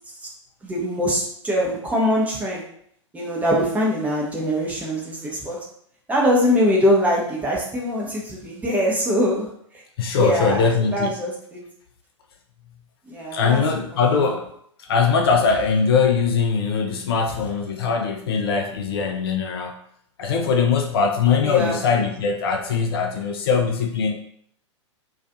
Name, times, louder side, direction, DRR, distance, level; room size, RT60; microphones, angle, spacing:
voice 1, 0.6-2.6 3.1-5.6 6.1-9.5 10.2-10.6 10.9-11.6 13.1-13.6 13.9-14.3 21.4-21.8, equal, 10° right, -3 dB, 0.6 m, -22 dB
voice 2, 10.0-11.1 13.3-14.5 14.8-19.8 20.2-24.2, left 5 dB, 50° left, 3 dB, 0.4 m, -21 dB
2.4 x 2.3 x 2.6 m, 0.67 s
figure-of-eight pair, 105°, 16 cm